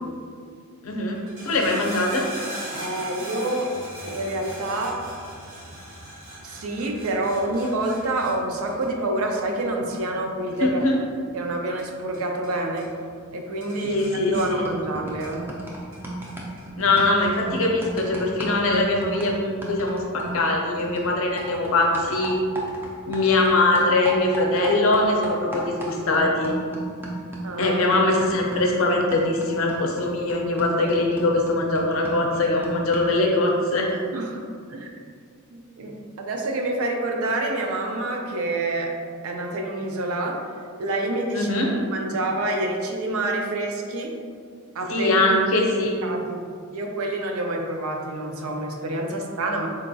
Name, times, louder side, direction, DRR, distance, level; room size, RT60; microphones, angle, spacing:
voice 1, 0.8-1.2 1.4-2.3 10.6-11.0 13.8-14.7 16.8-22.4 23.1-26.5 27.6-33.9 41.3-41.7 44.9-46.0 49.1-49.2, left 2 dB, 65° left, 0 dB, 0.5 m, -22 dB
sound 1, 1.1-12.5 12.8-13.3 13.6-15.6 15.9-16.7 17.4-17.5, right 1 dB, 65° right, 0.9 m, -40 dB
voice 2, 2.7-3.7 4.1-5.0 6.4-10.8 11.3-12.9 13.3-15.5 27.4-27.8 34.1-34.4 34.7-34.9 35.5-38.9 39.2-40.4 40.8-41.5 41.9-44.1 44.7-45.3 46.0-46.4 46.7-49.7, right 2 dB, 80° right, 2 dB, 0.4 m, -27 dB
sound 2, 13.8-14.1 14.4-23.5 23.8-33.2, right 1 dB, 10° right, 0.3 m, -36 dB
3.8 x 2.2 x 2.6 m, 2.1 s
head